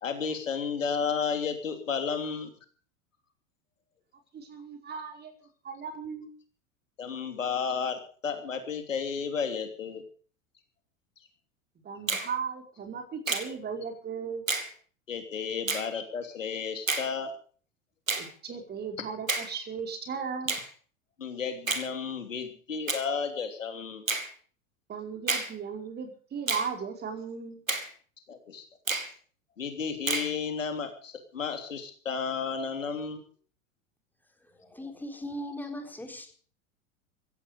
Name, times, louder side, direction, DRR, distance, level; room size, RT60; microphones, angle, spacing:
voice 1, 0.0-2.5 7.0-10.0 15.1-17.3 21.2-24.0 28.3-28.6 29.6-33.2, left 6 dB, 75° left, 6 dB, 3.2 m, -32 dB
voice 2, 4.3-5.3 5.6-6.3 11.8-14.4 18.2-20.6 24.9-27.6, right 6 dB, 25° right, 4 dB, 5.1 m, -36 dB
Finger snapping, 12.1-12.3 13.3-13.5 14.5-14.7 15.7-15.9 16.9-17.1 18.1-18.3 19.3-19.5 20.5-20.7 21.7-21.9 22.9-23.1 24.1-24.3 25.3-25.5 26.5-26.7 27.7-27.9 28.9-29.1 30.1-30.3, right 3 dB, 85° right, 2.7 m, -29 dB
voice 3, 34.5-36.3, left 1 dB, 5° left, 5 dB, 4.0 m, -39 dB
16.5 x 15.0 x 5.3 m, 0.43 s
figure-of-eight pair, 90°, 39 cm